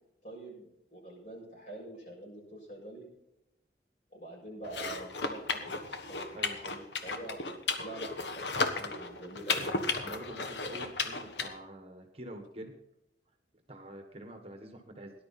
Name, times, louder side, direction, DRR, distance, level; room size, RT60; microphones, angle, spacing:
voice 1, 0.2-3.0 4.1-7.4 7.8-9.7, right 2 dB, 45° left, -4 dB, 7.2 m, -45 dB
sound 1, 4.6-11.5, left 3 dB, 85° left, 1.4 m, -34 dB
voice 2, 10.0-12.7 13.7-15.1, right 1 dB, 35° right, 5 dB, 1.5 m, -46 dB
18.5 x 11.0 x 4.3 m, 0.85 s
head